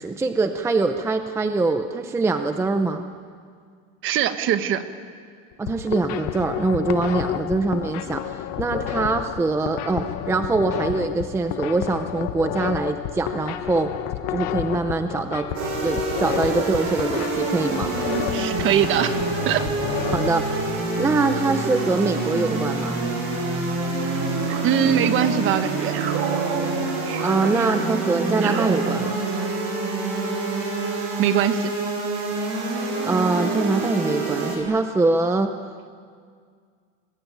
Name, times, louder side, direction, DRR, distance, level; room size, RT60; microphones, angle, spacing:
voice 1, 0.0-3.0 5.6-13.9 14.3-15.5 15.8-18.0 20.1-20.5 21.0-23.0 27.2-29.2 33.0-35.5, right 3 dB, 10° right, 7 dB, 0.6 m, -23 dB
voice 2, 4.0-4.8 18.1-19.2 19.4-19.6 24.6-25.9 31.2-31.7, right 9 dB, 40° right, 10 dB, 1.4 m, -22 dB
sound 1, 5.5-20.3, left 12 dB, 60° left, 1.3 m, -30 dB
sound 2, 15.5-34.6, right 3 dB, 60° right, 7.2 m, -26 dB
sound 3, 24.5-25.4 25.9-29.6, right 9 dB, 85° right, 2.8 m, -32 dB
28.5 x 22.0 x 9.3 m, 2.1 s
cardioid pair, 175°, 31 cm